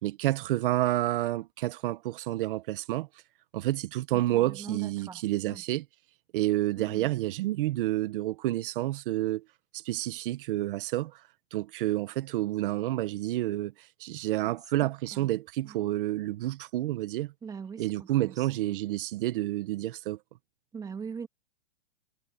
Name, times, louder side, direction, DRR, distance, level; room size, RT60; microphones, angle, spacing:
voice 1, 0.0-3.1 3.5-5.8 6.3-9.4 9.7-11.1 11.5-13.7 14.0-17.3 17.8-20.2, right 16 dB, 50° right, 1.1 m, -29 dB
voice 2, 4.1-5.6 6.8-7.1 14.4-14.5 14.8-15.3 17.4-17.8 18.2-18.3 20.7-21.3, right 6 dB, 10° right, 1.4 m, -41 dB
supercardioid pair, 160°, 35 cm